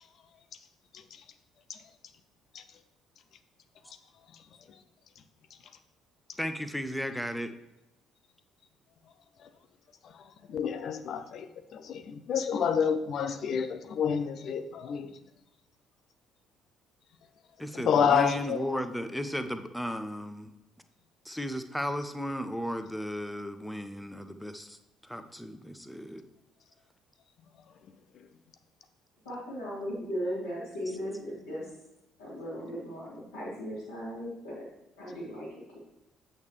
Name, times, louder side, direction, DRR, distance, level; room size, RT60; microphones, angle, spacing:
voice 1, 6.4-7.5 17.6-20.5 21.2-24.8 25.0-26.2 30.9-31.0, equal, 5° left, 9 dB, 0.7 m, -35 dB
voice 2, 10.5-11.5 11.7-15.1 17.8-18.8, left 7 dB, 50° left, 11 dB, 0.6 m, -28 dB
voice 3, 29.2-31.7 32.2-34.7 35.0-35.8, equal, 80° left, -12 dB, 3.1 m, -37 dB
8.4 x 6.4 x 3.2 m, 0.91 s
figure-of-eight pair, 50°, 0 cm